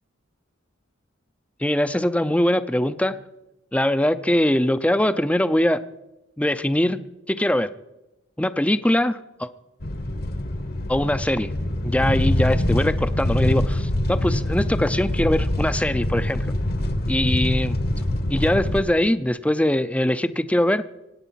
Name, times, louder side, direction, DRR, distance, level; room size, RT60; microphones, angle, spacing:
voice 1, 1.6-3.2 3.7-5.8 6.4-7.0 7.3-7.7 8.4-9.5 10.9-11.5 11.8-16.5 17.1-17.8 18.3-20.8, left 1 dB, 5° left, 13 dB, 0.6 m, -22 dB
sound 1, 9.8-18.8, left 1 dB, 50° left, 1.3 m, -24 dB
24.0 x 9.2 x 5.8 m, 0.96 s
head